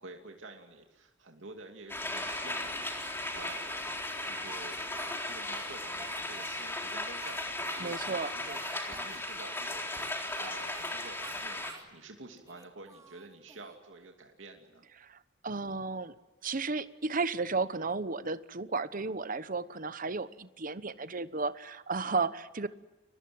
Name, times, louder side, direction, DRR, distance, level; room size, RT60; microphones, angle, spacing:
voice 1, 0.0-3.9 4.2-4.8 5.2-11.6 11.9-14.8, right 2 dB, 70° right, 3 dB, 2.6 m, -49 dB
sound 1, 1.9-11.7, left 1 dB, 10° left, 3.9 m, -36 dB
Speech, 2.2-3.6 4.2-5.5 6.0-6.6 7.2-7.8 8.1-8.2 8.5-9.2 9.9-10.9 11.2-11.9 12.4-13.7, right 3 dB, 20° right, 2.3 m, -50 dB
voice 2, 7.8-8.3 15.0-15.2 15.4-16.1 16.4-22.7, right 4 dB, 45° right, 14 dB, 1.0 m, -33 dB
30.0 x 23.0 x 7.8 m, 1.1 s
head